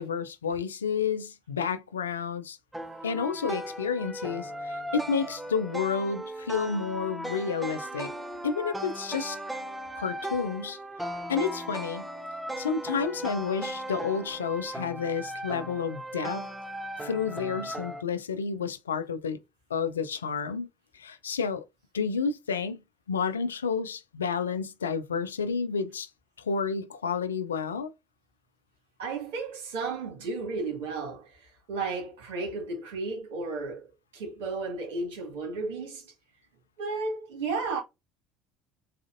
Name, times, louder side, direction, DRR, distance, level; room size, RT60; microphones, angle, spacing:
voice 1, 0.0-2.6 3.0-8.1 8.4-9.4 10.0-10.8 11.3-12.1 12.6-16.5 17.0-19.4 19.7-20.7 20.9-21.6 21.9-22.8 23.1-26.1 26.4-27.9, left 6 dB, 85° left, 0.4 m, -30 dB
sound 1, 2.7-18.0, right 1 dB, 5° right, 0.7 m, -37 dB
voice 2, 29.0-33.9 34.1-36.1 36.8-37.8, right 3 dB, 75° right, 1.7 m, -33 dB
4.0 x 2.5 x 2.5 m
hypercardioid pair, 65°, 0 cm